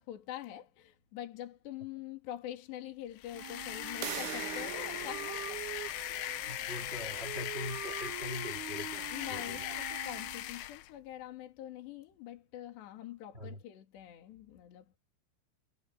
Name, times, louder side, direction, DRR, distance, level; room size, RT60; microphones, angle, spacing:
voice 1, 0.0-5.7 6.1-6.7 9.1-15.0, left 12 dB, 65° left, 4.6 m, -45 dB
sound 1, 3.2-10.9, left 15 dB, 85° left, 2.3 m, -39 dB
Wind instrument woodwind instrument, 3.3-10.7, right 12 dB, 60° right, 3.2 m, -45 dB
sound 2, 4.0-9.6, right 18 dB, 80° right, 2.7 m, -46 dB
voice 2, 6.4-9.6 13.3-13.6, left 1 dB, 20° right, 1.8 m, -43 dB
omnidirectional pair, 5.7 m